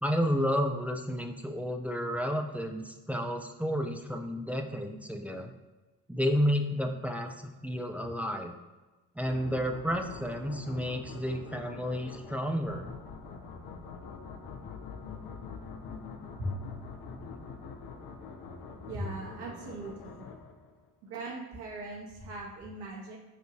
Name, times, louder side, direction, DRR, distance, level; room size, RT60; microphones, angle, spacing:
voice 1, 0.0-5.5 6.1-8.6 9.2-12.9, equal, 5° right, 5 dB, 0.4 m, -31 dB
sound 1, 9.2-20.9, left 5 dB, 50° left, 0.8 m, -45 dB
voice 2, 16.4-16.7 18.9-20.3 21.0-23.2, right 1 dB, 55° right, -3 dB, 1.2 m, -39 dB
6.4 x 2.6 x 2.9 m, 1.2 s
hypercardioid pair, 45°, 47 cm